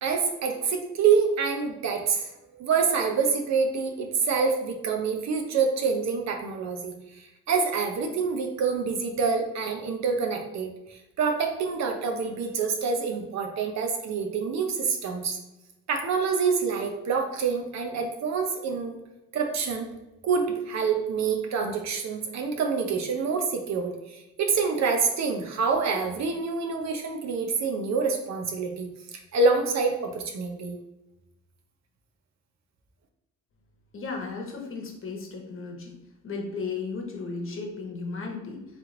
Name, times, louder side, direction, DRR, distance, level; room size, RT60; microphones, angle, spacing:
voice 1, 0.0-15.4 15.9-19.0 19.3-19.9 20.2-28.9 29.3-30.8, right 5 dB, 65° right, 3 dB, 0.7 m, -27 dB
voice 2, 33.9-35.9 36.2-38.7, left 4 dB, 45° left, 1 dB, 1.0 m, -35 dB
3.4 x 3.0 x 3.7 m, 0.94 s
cardioid pair, 90°, 30 cm